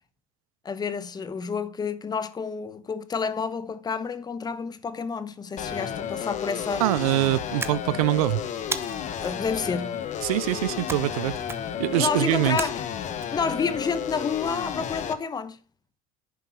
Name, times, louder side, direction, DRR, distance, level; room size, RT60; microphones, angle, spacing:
voice 1, 0.6-6.8 9.2-10.0 11.9-12.9 13.3-15.6, left 5 dB, 20° left, 1.0 m, -29 dB
sound 1, 5.6-15.1, left 8 dB, 45° left, 1.3 m, -32 dB
voice 2, 6.8-8.4 10.2-11.4 11.8-12.6, right 18 dB, 90° right, 0.4 m, -24 dB
sound 2, 7.6-8.2 8.7-9.3 10.9-11.2 11.4-11.9 12.6-13.3, right 4 dB, 15° right, 0.8 m, -34 dB
10.5 x 5.4 x 4.5 m
supercardioid pair, 110°, 18 cm